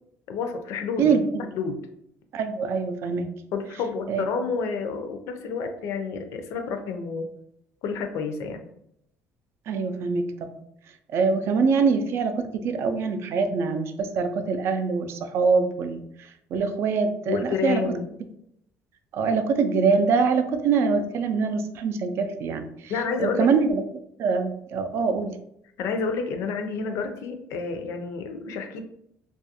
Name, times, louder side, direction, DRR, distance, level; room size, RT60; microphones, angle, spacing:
voice 1, 0.3-1.2 1.5-1.8 3.5-7.3 7.8-8.6 17.3-18.0 22.9-23.5 25.8-28.8, left 5 dB, 70° left, 6 dB, 0.4 m, -29 dB
voice 2, 1.0-1.5 2.3-3.3 4.1-4.5 9.7-10.5 11.1-17.8 19.1-22.9 23.2-23.8 24.2-25.4, right 5 dB, 55° right, 8 dB, 0.3 m, -24 dB
2.4 x 2.2 x 2.8 m, 0.74 s
cardioid pair, 110°, 5 cm